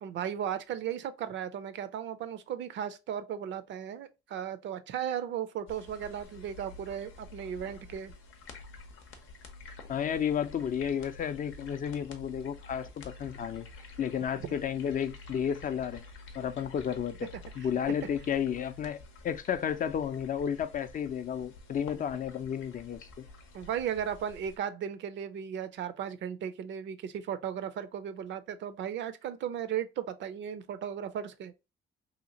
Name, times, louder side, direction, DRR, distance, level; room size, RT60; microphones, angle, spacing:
voice 1, 0.0-8.1 22.0-22.1 23.5-31.5, right 9 dB, 65° right, 0.4 m, -36 dB
sound 1, 5.7-24.6, left 3 dB, 90° left, 0.7 m, -49 dB
voice 2, 9.9-13.7 14.0-16.0 16.3-17.3 17.6-19.0 19.2-23.2, left 8 dB, 45° left, 0.4 m, -32 dB
2.8 x 2.5 x 2.7 m
cardioid pair, 90°, 20 cm